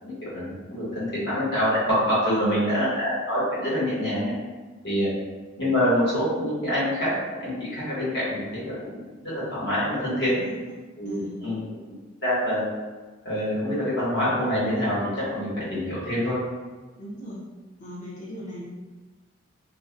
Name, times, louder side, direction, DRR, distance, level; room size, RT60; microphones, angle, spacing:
voice 1, 0.0-4.3 4.8-5.1 5.6-10.3 11.0-11.6 12.2-12.6 13.2-16.4, equal, 60° left, -10 dB, 1.2 m, -26 dB
voice 2, 0.6-1.4 2.3-2.9 10.3-10.8 11.1-11.4 17.0-17.4 17.8-18.7, equal, 40° left, -8 dB, 0.6 m, -39 dB
2.4 x 2.1 x 2.5 m, 1.3 s
head